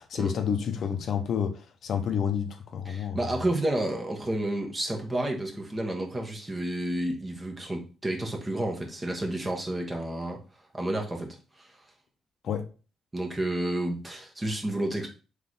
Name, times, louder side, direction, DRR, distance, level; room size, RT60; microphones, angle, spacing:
voice 1, 0.0-3.4 12.4-12.7, left 7 dB, 65° left, 0.7 m, -30 dB
voice 2, 2.9-10.4 10.7-11.7 13.1-15.1, right 1 dB, 20° right, 1.2 m, -30 dB
3.9 x 3.2 x 3.9 m
cardioid pair, 90°, 0 cm